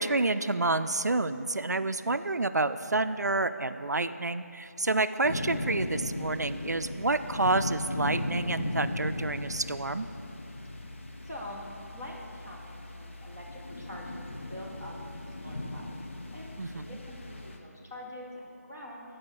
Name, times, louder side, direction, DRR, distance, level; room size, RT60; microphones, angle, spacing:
voice 1, 0.0-10.1 16.6-17.0, right 2 dB, 85° right, 11 dB, 0.4 m, -29 dB
sound 1, 5.2-17.6, left 1 dB, 45° left, 0.8 m, -37 dB
voice 2, 11.2-11.7 11.9-15.9 16.3-19.0, left 1 dB, 5° left, -5 dB, 0.3 m, -45 dB
12.5 x 4.9 x 4.6 m, 2.8 s
figure-of-eight pair, 160°, 9 cm